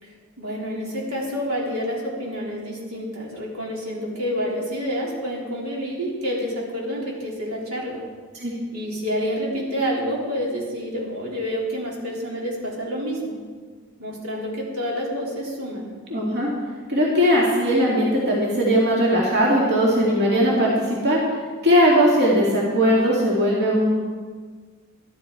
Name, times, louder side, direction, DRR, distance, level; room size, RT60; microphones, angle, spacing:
voice 1, 0.0-8.0 8.7-13.3 14.0-15.9, equal, 85° right, -4 dB, 3.3 m, -28 dB
voice 2, 16.1-16.5 16.9-21.2 21.6-23.9, equal, 50° right, -4 dB, 2.4 m, -19 dB
12.0 x 11.5 x 4.6 m, 1.5 s
head